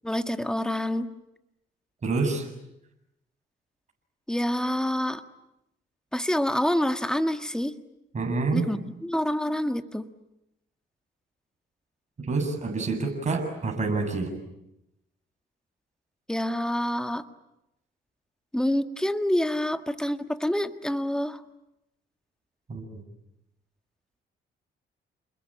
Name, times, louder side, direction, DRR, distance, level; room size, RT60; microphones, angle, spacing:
voice 1, 0.0-1.1 4.3-5.2 6.1-7.7 8.5-10.0 16.3-17.2 18.5-21.4, left 1 dB, 5° left, 8 dB, 1.7 m, -27 dB
voice 2, 2.0-2.5 8.1-8.6 12.2-14.3 22.7-23.0, right 3 dB, 35° right, 3 dB, 7.4 m, -27 dB
29.5 x 21.5 x 8.8 m, 0.86 s
cardioid pair, 90°, 20 cm